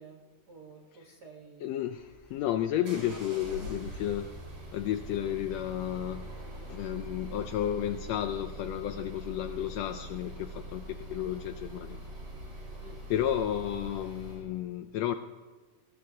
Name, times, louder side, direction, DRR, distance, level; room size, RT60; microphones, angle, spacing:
voice 1, 0.0-1.9 3.1-3.7 12.8-13.0, right 3 dB, 50° right, 0 dB, 1.3 m, -52 dB
voice 2, 1.6-4.3 4.7-6.3 6.7-12.0 13.1-15.1, left 11 dB, 80° left, 9 dB, 1.5 m, -32 dB
sound 1, 1.9-14.4, right 1 dB, 70° right, 6.2 m, -43 dB
20.5 x 18.5 x 2.8 m, 1.4 s
omnidirectional pair, 3.4 m